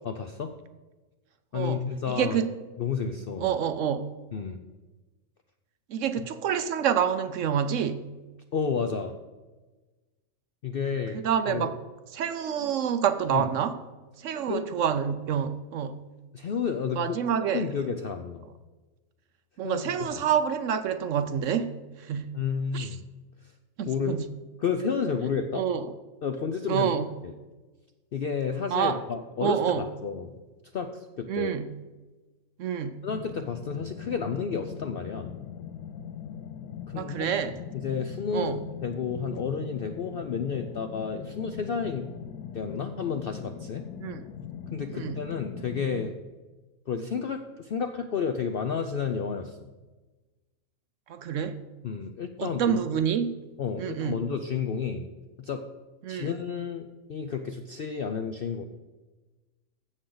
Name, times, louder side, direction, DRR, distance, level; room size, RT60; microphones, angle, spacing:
voice 1, 0.0-0.5 1.5-2.4 2.8-3.5 4.3-4.6 8.5-9.1 10.6-11.2 11.5-11.8 13.3-13.5 14.5-14.6 16.3-17.2 17.5-18.4 19.6-20.3 22.3-23.0 23.4-23.5 23.9-24.2 24.6-25.6 26.2-26.9 27.2-27.3 28.1-30.4 30.7-31.5 33.0-35.3 36.9-37.3 37.8-42.1 42.5-43.8 44.7-46.1 46.9-49.7 51.8-52.8 53.6-55.1 55.4-55.6 56.1-58.6, left 6 dB, 65° left, 6 dB, 0.5 m, -31 dB
voice 2, 1.5-2.5 3.4-4.1 5.9-8.0 11.2-11.7 12.1-13.8 14.2-16.0 17.0-17.6 19.6-21.7 22.0-22.3 22.7-22.9 23.8-24.3 25.5-25.9 26.7-27.1 28.7-29.0 29.4-29.8 31.3-31.8 32.6-33.0 37.0-37.5 38.3-38.6 44.0-44.2 44.9-45.2 51.1-51.6 52.4-53.4 53.8-54.2 56.0-56.3, right 8 dB, 65° right, 11 dB, 0.8 m, -27 dB
sound 1, 33.1-46.1, left 8 dB, 80° left, 1.1 m, -41 dB
15.5 x 6.5 x 3.9 m, 1.2 s
omnidirectional pair, 1.6 m